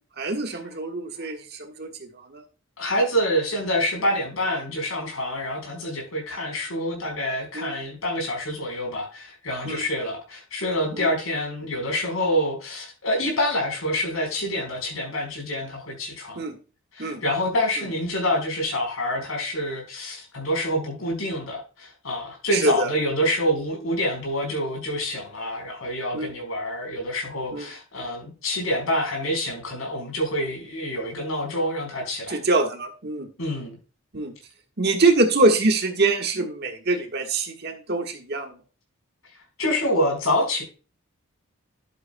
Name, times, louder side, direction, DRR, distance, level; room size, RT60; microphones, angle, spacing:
voice 1, 0.2-2.4 7.5-7.7 9.6-9.9 10.9-11.1 16.3-16.5 17.0-17.2 22.5-22.9 26.1-26.3 27.5-27.7 32.3-33.3 34.1-34.3 34.8-38.5, right 2 dB, 50° right, 4 dB, 1.4 m, -24 dB
voice 2, 2.8-16.4 16.9-32.4 33.4-33.8 39.6-40.6, equal, 80° left, 2 dB, 4.5 m, -27 dB
11.5 x 8.1 x 2.2 m, 0.33 s
head